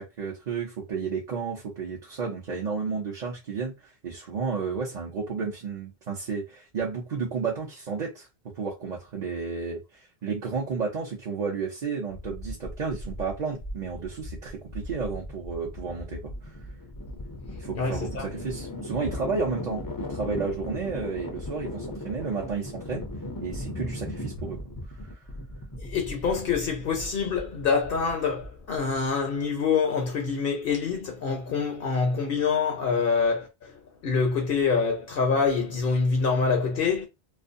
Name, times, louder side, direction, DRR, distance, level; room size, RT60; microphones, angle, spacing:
voice 1, 0.0-8.3 8.5-16.3 17.6-23.1 23.4-24.6 25.1-25.2, right 5 dB, 50° right, 0.7 m, -32 dB
sound 1, 12.1-29.1, left 1 dB, 30° left, 0.4 m, -38 dB
voice 2, 17.7-18.3 25.8-33.5 34.0-37.1, left 5 dB, 65° left, 0.7 m, -25 dB
2.4 x 2.2 x 2.5 m
omnidirectional pair, 1.1 m